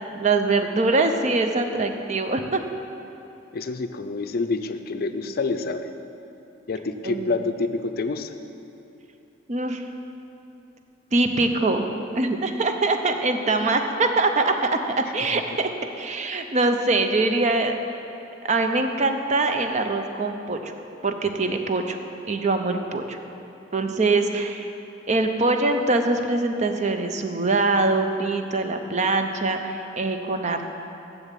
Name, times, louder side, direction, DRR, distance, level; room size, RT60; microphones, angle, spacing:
voice 1, 0.1-2.6 7.0-7.3 9.5-9.8 11.1-11.9 12.1-15.7 16.0-17.7 18.5-20.7 21.0-22.0 22.3-23.2 23.7-24.7 25.1-30.6, right 3 dB, 40° right, 6 dB, 0.6 m, -23 dB
voice 2, 3.5-5.9 6.7-8.3 15.3-15.4, left 3 dB, 55° left, 9 dB, 0.5 m, -27 dB
7.1 x 6.8 x 7.4 m, 3.0 s
head